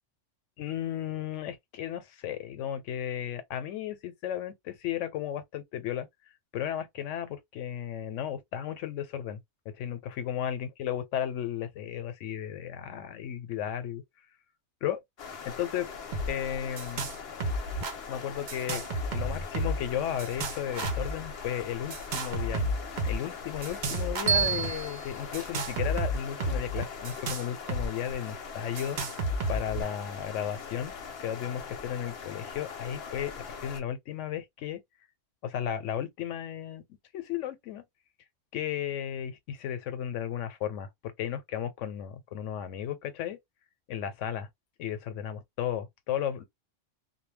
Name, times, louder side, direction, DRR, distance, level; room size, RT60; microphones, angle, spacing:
voice 1, 0.6-6.1 6.5-9.4 9.8-14.0 14.8-15.0 15.4-15.9 16.3-17.1 18.1-18.8 19.1-30.9 31.2-34.8 35.4-36.8 37.1-37.8 38.5-43.4 43.9-44.5 44.8-46.4, left 10 dB, 90° left, 0.9 m, -34 dB
sound 1, 15.2-33.8, left 5 dB, 60° left, 0.8 m, -41 dB
sound 2, 16.1-16.3 16.5-17.1 17.4-17.9 18.5-19.9 20.2-21.1 21.9-23.2 23.6-24.7 25.3-27.9 28.1-28.2 28.8-29.8, right 1 dB, 50° right, 0.6 m, -31 dB
Bell, 24.3-26.5, right 7 dB, 75° right, 1.1 m, -32 dB
2.2 x 2.1 x 3.2 m
omnidirectional pair, 1.2 m